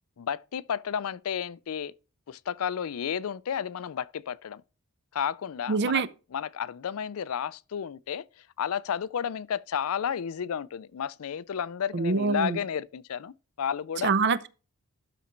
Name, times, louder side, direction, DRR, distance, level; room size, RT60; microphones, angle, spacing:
voice 1, 0.2-1.9 2.3-4.6 5.1-6.0 6.3-8.2 8.6-14.1, left 8 dB, 70° left, 0.4 m, -32 dB
voice 2, 5.7-6.1 11.9-12.6 14.0-14.5, right 4 dB, 50° right, 0.6 m, -25 dB
12.0 x 4.1 x 4.5 m
head